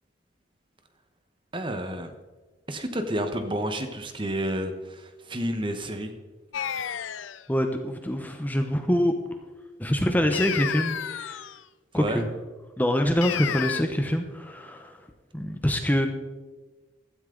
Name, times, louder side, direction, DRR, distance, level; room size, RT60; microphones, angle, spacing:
voice 1, 1.5-2.1 2.7-6.1 11.9-12.2, right 1 dB, 25° right, 7 dB, 1.1 m, -30 dB
sound 1, 6.5-7.4 10.3-11.6 13.2-13.8, left 9 dB, 85° left, 0.5 m, -31 dB
voice 2, 7.5-9.1 9.8-11.4 11.9-12.3 12.8-15.0 15.3-16.1, equal, 10° left, 5 dB, 0.9 m, -25 dB
15.5 x 13.0 x 3.9 m, 1.3 s
head